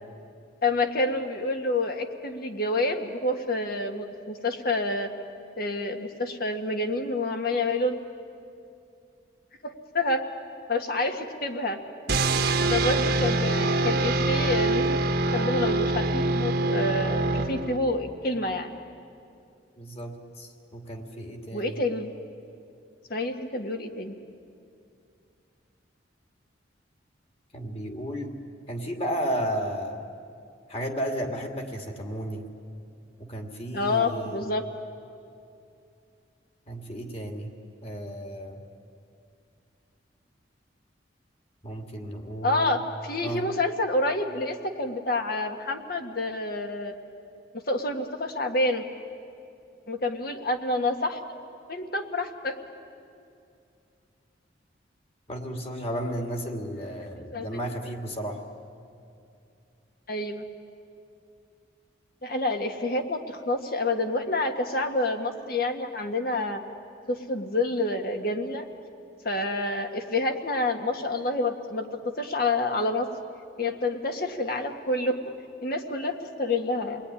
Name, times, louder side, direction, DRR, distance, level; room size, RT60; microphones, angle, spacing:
voice 1, 0.6-5.1 5.6-7.9 9.6-10.2 10.7-11.8 12.6-15.0 15.3-18.8 21.5-22.1 23.1-24.1 33.7-34.6 42.4-46.9 47.7-48.8 49.9-51.2 51.7-52.6 57.3-57.5 60.1-60.4 62.2-66.6 67.1-68.7 69.2-71.9 72.2-73.1 73.6-75.2 75.6-77.0, left 2 dB, 50° left, 4 dB, 1.8 m, -28 dB
sound 1, 12.1-18.0, right 2 dB, 55° right, 1.4 m, -25 dB
voice 2, 19.8-21.8 27.5-28.4 28.7-30.0 30.7-32.5 33.2-34.4 36.7-37.5 37.8-38.6 41.6-42.8 43.2-43.5 55.3-58.4, equal, 30° left, 3 dB, 2.5 m, -33 dB
28.5 x 20.5 x 10.0 m, 2.5 s
head